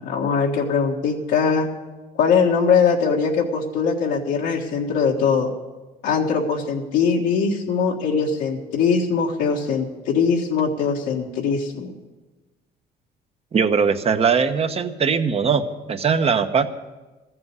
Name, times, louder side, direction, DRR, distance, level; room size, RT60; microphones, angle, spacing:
voice 1, 0.0-1.7 2.2-5.5 6.0-11.9, left 5 dB, 85° left, -2 dB, 1.6 m, -21 dB
voice 2, 13.5-16.7, right 6 dB, 35° right, 8 dB, 0.9 m, -20 dB
14.0 x 7.8 x 9.5 m, 1.2 s
cardioid pair, 110°, 17 cm